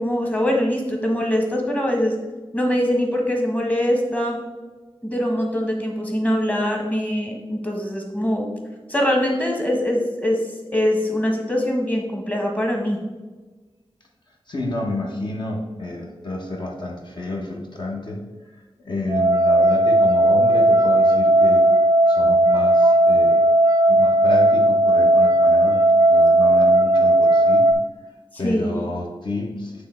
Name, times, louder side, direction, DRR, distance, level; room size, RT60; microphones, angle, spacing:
voice 1, 0.0-2.1 2.5-4.4 5.0-8.5 8.9-10.4 10.7-13.0 28.4-28.8, equal, 15° left, 1 dB, 1.3 m, -23 dB
voice 2, 14.5-18.2 18.5-21.6 22.1-23.5 23.9-27.7 28.4-29.9, left 2 dB, 50° left, -1 dB, 1.1 m, -30 dB
sound 1, 19.1-27.7, right 1 dB, 35° right, 0.5 m, -16 dB
8.4 x 3.2 x 4.4 m, 1.2 s
wide cardioid pair, 105°, 10 cm